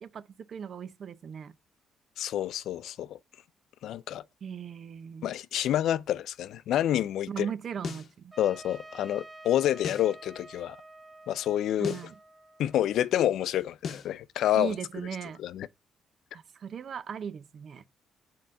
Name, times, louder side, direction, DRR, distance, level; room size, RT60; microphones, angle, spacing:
voice 1, 0.0-1.5 4.4-5.3 7.3-8.3 11.8-12.1 14.5-15.4 16.3-17.8, right 7 dB, 55° right, 0.5 m, -38 dB
voice 2, 2.2-3.2 3.8-4.2 5.2-7.5 8.4-10.8 11.3-12.0 12.6-14.7 15.4-15.7, left 11 dB, 80° left, 0.4 m, -28 dB
sound 1, 7.8-8.1 9.8-10.1 11.8-12.1 13.8-14.1, left 6 dB, 60° left, 0.8 m, -37 dB
Trumpet, 8.3-13.1, right 2 dB, 15° right, 0.8 m, -50 dB
5.3 x 3.8 x 5.6 m
cardioid pair, 90°, 0 cm